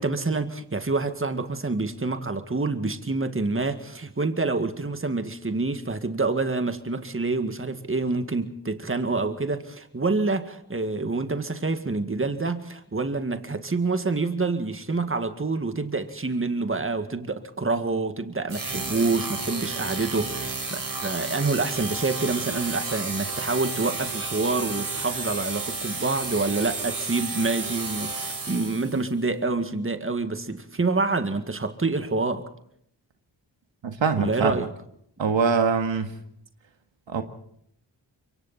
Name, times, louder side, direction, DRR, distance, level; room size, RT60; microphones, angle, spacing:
voice 1, 0.0-32.4 34.2-34.7, right 3 dB, 30° right, 1.9 m, -27 dB
sound 1, 18.5-29.1, right 3 dB, 45° right, 4.2 m, -32 dB
voice 2, 33.8-34.7 35.2-36.1 37.1-37.2, right 5 dB, 75° right, 1.9 m, -23 dB
26.5 x 23.5 x 4.3 m
cardioid pair, 50°, 46 cm